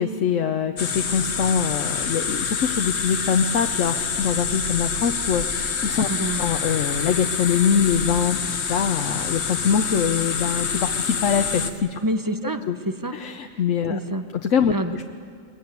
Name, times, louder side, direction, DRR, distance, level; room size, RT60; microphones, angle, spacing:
voice 1, 0.0-6.1 6.4-8.4 8.7-12.0 12.7-12.8 13.1-14.0 14.3-15.1, left 7 dB, 90° left, 6 dB, 1.2 m, -23 dB
sound 1, 0.8-11.7, left 6 dB, 65° left, 1.3 m, -27 dB
sound 2, 1.6-8.2, right 3 dB, 45° right, 1.5 m, -43 dB
voice 2, 6.1-6.4 12.0-13.1 13.9-14.3 14.7-15.0, right 1 dB, 20° right, 8 dB, 0.9 m, -27 dB
22.0 x 21.5 x 9.5 m, 2.2 s
omnidirectional pair, 1.3 m